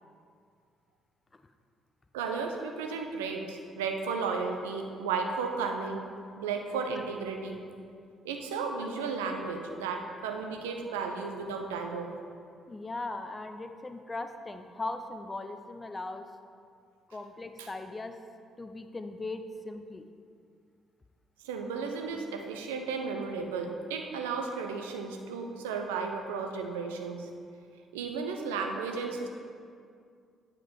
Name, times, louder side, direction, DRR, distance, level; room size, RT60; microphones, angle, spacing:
voice 1, 2.1-6.1 6.4-7.6 8.2-12.1 17.6-17.7 21.4-27.3 27.9-29.3, right 5 dB, 75° right, 3 dB, 0.5 m, -34 dB
voice 2, 12.7-16.3 17.1-18.2 18.6-20.0, left 2 dB, 25° left, 8 dB, 0.5 m, -39 dB
8.9 x 3.6 x 4.6 m, 2.3 s
figure-of-eight pair, 45°, 0 cm